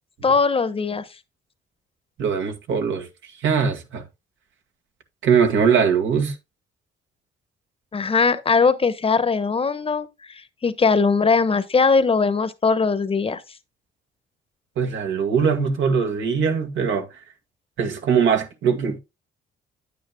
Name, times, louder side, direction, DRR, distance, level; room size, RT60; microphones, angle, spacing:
voice 1, 0.2-1.0 7.9-10.1 10.6-13.4, left 4 dB, 30° left, 1.0 m, -20 dB
voice 2, 2.2-3.1 3.4-4.0 5.2-6.3 14.8-17.1 17.8-19.0, right 6 dB, 75° right, 1.8 m, -21 dB
9.3 x 9.1 x 2.2 m
cardioid pair, 90°, 20 cm